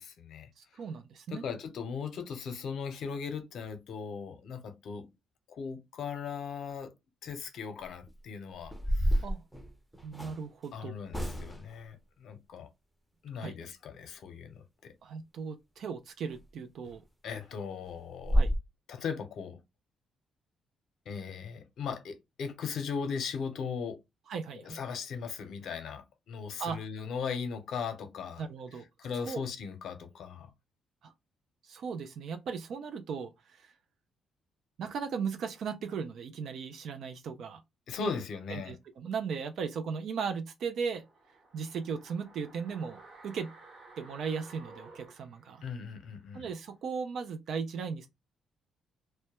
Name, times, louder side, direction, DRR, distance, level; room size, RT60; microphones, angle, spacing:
voice 1, 0.0-0.5 1.3-5.1 5.5-6.9 7.2-9.2 10.7-12.7 13.2-14.9 17.2-18.5 18.9-19.6 21.1-24.0 24.6-28.5 29.0-30.5 37.9-38.8 45.6-46.5, left 6 dB, 70° left, 0.6 m, -38 dB
voice 2, 0.6-1.4 9.2-9.4 10.0-11.0 13.4-13.6 15.0-17.0 18.3-18.5 24.3-24.8 26.6-26.8 28.4-28.8 29.3-29.4 31.0-31.1 31.6-33.7 34.8-37.6 38.5-41.0 41.5-43.5 44.0-45.6 46.3-48.1, right 6 dB, 70° right, 0.3 m, -37 dB
sound 1, 7.9-8.1 8.6-10.4 11.1-11.8 16.3-16.4 16.8-17.0 17.3-17.4 17.8-17.9 18.2-18.6, equal, 5° right, 0.6 m, -29 dB
sound 2, 40.9-46.0 46.3-46.4, right 3 dB, 50° right, 1.0 m, -54 dB
2.2 x 2.1 x 2.9 m
cardioid pair, 90°, 0 cm